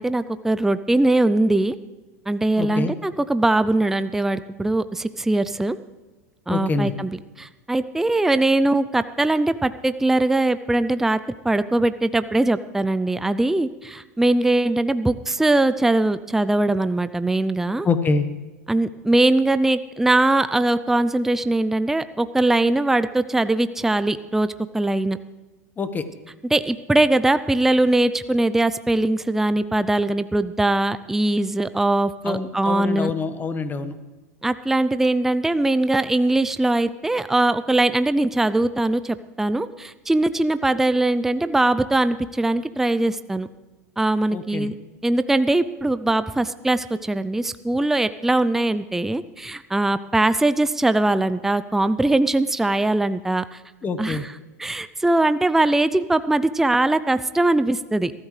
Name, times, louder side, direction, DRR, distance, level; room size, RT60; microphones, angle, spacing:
voice 1, 0.0-1.8 2.3-5.8 6.5-11.2 11.4-17.9 18.7-25.2 26.5-33.1 34.4-43.5 44.0-44.7 45.0-53.6 54.0-54.2 54.6-58.1, right 2 dB, 5° right, 13 dB, 0.4 m, -21 dB
voice 2, 2.6-2.9 6.5-6.9 17.8-18.3 25.8-26.0 32.2-33.9 44.3-44.7 53.8-54.2, left 4 dB, 20° left, 10 dB, 1.3 m, -25 dB
22.5 x 13.0 x 3.3 m, 1.2 s
hypercardioid pair, 110°, 8 cm